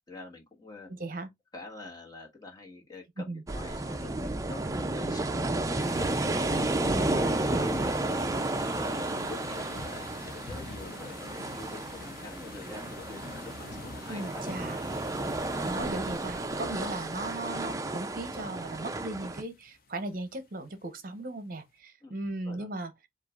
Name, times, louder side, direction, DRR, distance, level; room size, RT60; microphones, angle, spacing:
voice 1, 0.1-0.9 1.5-4.1 4.5-6.5 6.9-8.2 8.7-14.4 16.7-17.0 22.0-22.2 22.4-22.7, left 3 dB, 20° left, 1.4 m, -47 dB
voice 2, 0.9-1.3 3.3-3.4 14.1-14.8 15.6-22.9, right 2 dB, 45° right, 0.8 m, -37 dB
sound 1, 3.5-19.4, right 2 dB, 15° right, 0.4 m, -32 dB
sound 2, 5.8-20.4, left 3 dB, 50° left, 0.6 m, -46 dB
7.5 x 2.5 x 2.4 m
head